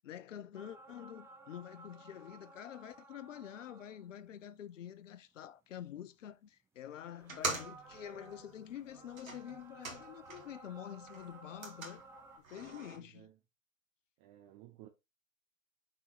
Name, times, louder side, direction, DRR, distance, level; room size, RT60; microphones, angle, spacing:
voice 1, 0.0-12.0 12.5-13.3, left 10 dB, 65° left, 0.8 m, -47 dB
sound 1, 0.5-4.6 5.1-5.2 7.1-12.4, right 3 dB, 5° right, 0.7 m, -56 dB
sound 2, 7.2-10.6 10.9-13.0, right 3 dB, 80° right, 2.0 m, -44 dB
voice 2, 12.9-13.4 14.2-14.9, right 14 dB, 30° right, 1.0 m, -56 dB
6.1 x 3.7 x 4.5 m
figure-of-eight pair, 115°, 41 cm